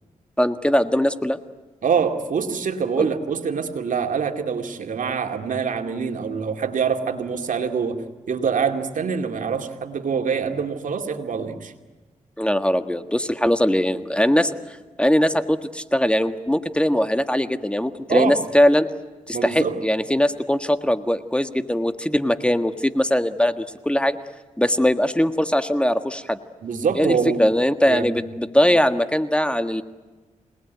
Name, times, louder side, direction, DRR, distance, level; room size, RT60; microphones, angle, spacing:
voice 1, 0.4-1.4 3.0-3.1 12.4-14.5 15.0-18.9 19.3-24.2 24.6-26.4 26.9-29.8, equal, 10° left, 9 dB, 1.6 m, -21 dB
voice 2, 1.8-8.0 8.3-11.7 18.1-18.4 19.3-19.8 26.6-27.4 27.9-28.2, right 6 dB, 75° right, 5 dB, 2.4 m, -25 dB
27.0 x 19.5 x 9.3 m, 1.2 s
cardioid pair, 55°, 13 cm